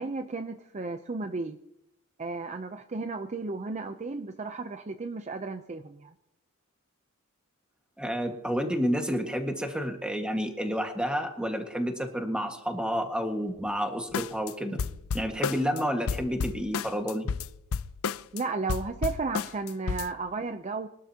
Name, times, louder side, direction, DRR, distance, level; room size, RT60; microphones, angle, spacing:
voice 1, 0.0-1.6 2.2-6.1 18.3-20.9, right 3 dB, 30° right, 8 dB, 0.6 m, -34 dB
voice 2, 8.0-14.8 15.1-17.3, equal, 5° right, 4 dB, 1.7 m, -30 dB
sound 1, 14.1-14.5 14.8-15.8 16.1-18.4 18.7-20.1, left 6 dB, 70° left, 0.5 m, -31 dB
23.0 x 12.5 x 2.9 m, 0.81 s
head